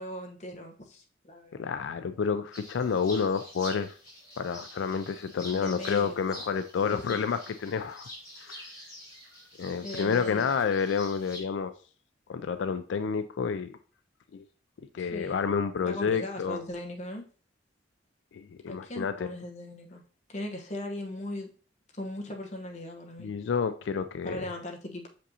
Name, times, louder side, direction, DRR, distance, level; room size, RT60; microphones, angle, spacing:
voice 1, 0.0-1.7 5.5-6.2 6.8-7.2 9.8-10.5 15.0-15.4 15.9-17.2 18.7-20.0 20.3-21.5 22.0-23.3 24.2-25.1, left 1 dB, 40° left, 1 dB, 1.0 m, -39 dB
voice 2, 1.5-4.0 4.4-8.1 8.4-8.7 9.6-11.7 12.3-13.8 14.3-14.4 14.9-16.6 18.3-19.3 23.2-24.5, left 6 dB, 85° left, 10 dB, 0.4 m, -29 dB
sound 1, 2.5-11.4, equal, 20° left, 3.1 m, -46 dB
6.6 x 5.1 x 2.8 m, 0.39 s
head